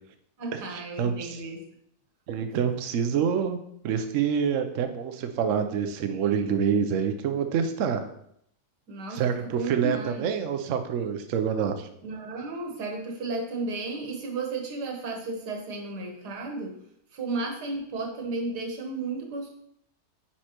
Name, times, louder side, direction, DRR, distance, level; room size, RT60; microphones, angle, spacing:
voice 1, 0.4-1.6 8.9-10.3 12.0-16.7 17.1-19.5, right 3 dB, 75° right, 1 dB, 1.8 m, -33 dB
voice 2, 1.0-1.4 2.3-3.6 3.8-8.1 9.1-11.9, right 7 dB, 60° right, 7 dB, 0.9 m, -27 dB
9.4 x 4.4 x 2.9 m, 0.72 s
omnidirectional pair, 1.8 m